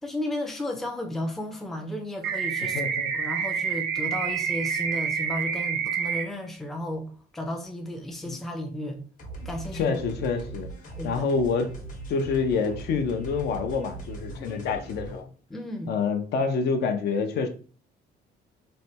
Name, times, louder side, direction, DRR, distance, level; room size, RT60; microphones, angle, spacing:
voice 1, 0.0-2.8 3.1-9.0 9.5-10.0 11.0-11.3 14.4-14.6 15.5-15.9, left 1 dB, ahead, 0.4 m, -34 dB
sound 1, 2.2-6.2, right 7 dB, 80° right, 0.5 m, -28 dB
voice 2, 2.6-3.1 8.2-8.4 9.7-10.7 11.0-11.7 12.1-15.3 15.9-17.5, left 5 dB, 70° left, 0.5 m, -27 dB
sound 2, 9.2-15.2, right 2 dB, 50° left, 0.9 m, -40 dB
3.2 x 2.2 x 2.7 m
cardioid pair, 145°, 18 cm